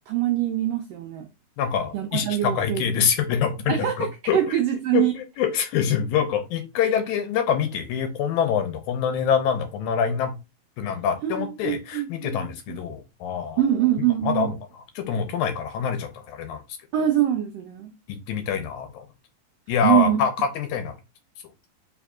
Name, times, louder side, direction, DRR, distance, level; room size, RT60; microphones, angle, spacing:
voice 1, 0.1-1.3 1.9-2.9 3.7-3.9 4.3-5.1 11.2-12.8 13.6-14.5 16.9-17.9 19.8-20.2, right 12 dB, 80° right, 1.4 m, -24 dB
voice 2, 1.6-4.4 4.9-10.4 10.8-13.6 14.2-14.6 15.0-16.6 18.1-19.1 19.7-21.0, left 7 dB, 85° left, 2.0 m, -25 dB
4.4 x 3.5 x 2.4 m
omnidirectional pair, 3.5 m